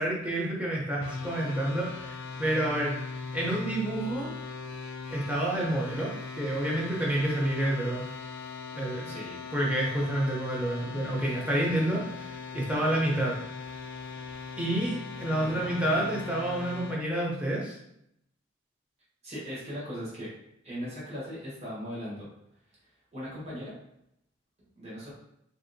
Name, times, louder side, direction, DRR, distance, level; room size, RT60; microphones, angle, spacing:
voice 1, 0.0-4.3 5.1-8.0 8.7-9.1 9.5-13.4 14.6-17.8, right 1 dB, 5° right, -4 dB, 0.5 m, -29 dB
sound 1, 1.0-17.0, left 4 dB, 70° left, 0.3 m, -40 dB
voice 2, 9.0-9.4 15.4-15.8 19.2-20.3 20.6-22.3 23.1-23.7 24.7-25.1, equal, 35° right, -8 dB, 1.0 m, -38 dB
2.9 x 2.7 x 2.6 m, 0.77 s
head